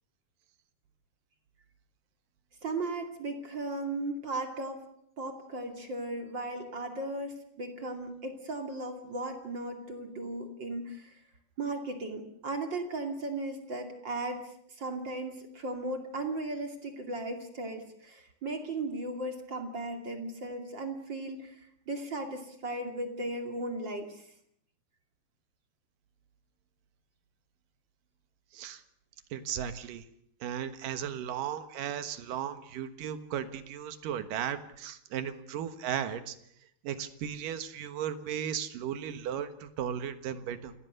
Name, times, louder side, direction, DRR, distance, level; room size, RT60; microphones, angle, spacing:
voice 1, 2.6-4.8 5.2-11.2 11.6-24.3, right 2 dB, 30° right, 5 dB, 2.6 m, -36 dB
voice 2, 29.3-30.0 30.4-36.4 36.8-40.7, right 9 dB, 65° right, 10 dB, 2.7 m, -36 dB
28.5 x 18.5 x 6.7 m, 0.70 s
omnidirectional pair, 4.8 m